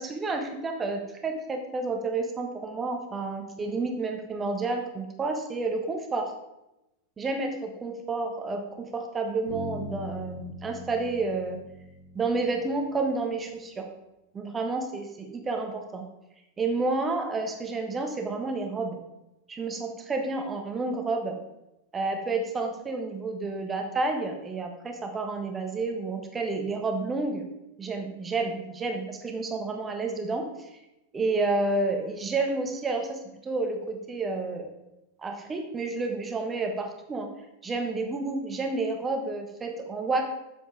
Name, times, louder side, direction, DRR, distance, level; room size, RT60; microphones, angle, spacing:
voice 1, 0.0-6.3 7.2-11.6 12.1-13.9 14.3-16.1 16.6-19.0 19.5-21.4 21.9-27.5 27.8-30.7 31.1-34.7 35.2-37.3 37.6-40.3, right 3 dB, 20° right, 4 dB, 1.2 m, -30 dB
Bass guitar, 9.5-13.4, left 2 dB, 70° left, 3.1 m, -42 dB
7.6 x 7.5 x 3.5 m, 0.93 s
figure-of-eight pair, 90°, 0 cm